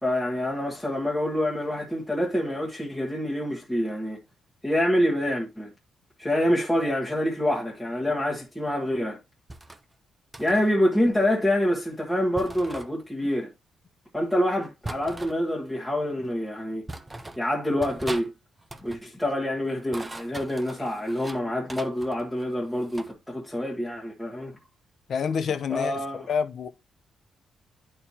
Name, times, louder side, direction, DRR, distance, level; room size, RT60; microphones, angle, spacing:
voice 1, 0.0-4.2 4.6-5.7 6.2-9.2 10.4-13.5 14.1-16.8 17.4-18.3 18.8-24.6 25.7-26.3, left 1 dB, 5° left, 1.4 m, -26 dB
sound 1, 9.5-9.8 10.3-10.7 12.3-12.9 14.8-15.4 16.2-16.3 16.9-17.4 17.8-18.3 18.6-19.0 19.7-21.4 21.7-23.1, right 2 dB, 15° right, 0.7 m, -39 dB
voice 2, 25.1-26.7, left 6 dB, 55° left, 0.8 m, -28 dB
11.0 x 4.5 x 2.8 m
cardioid pair, 140°, 0 cm